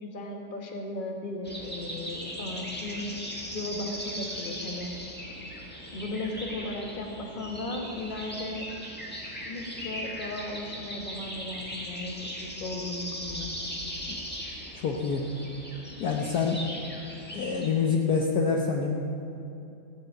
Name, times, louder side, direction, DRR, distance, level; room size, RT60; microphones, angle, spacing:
voice 1, 0.0-3.1 3.5-4.9 5.9-8.7 9.5-12.1 12.6-13.5, left 2 dB, 30° left, 2 dB, 1.3 m, -36 dB
sound 1, 1.4-17.7, equal, 5° left, 1.3 m, -39 dB
voice 2, 14.7-15.3 16.0-16.6 17.3-18.9, left 5 dB, 60° left, 0 dB, 1.2 m, -26 dB
14.5 x 6.3 x 8.8 m, 2.9 s
omnidirectional pair, 2.1 m